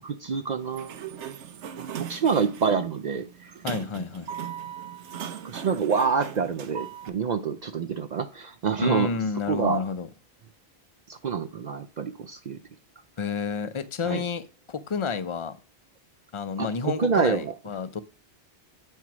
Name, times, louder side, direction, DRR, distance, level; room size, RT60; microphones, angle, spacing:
voice 1, 0.0-0.9 1.8-3.5 5.4-9.1 9.5-9.8 11.1-12.6 14.0-14.2 16.6-17.5, right 6 dB, 55° right, 0.5 m, -27 dB
Sliding door, 0.6-7.1, right 8 dB, 90° right, 1.0 m, -38 dB
voice 2, 3.6-4.3 8.8-10.1 13.2-15.6 16.3-18.0, left 5 dB, 40° left, 0.4 m, -30 dB
8.3 x 4.5 x 6.0 m
omnidirectional pair, 1.1 m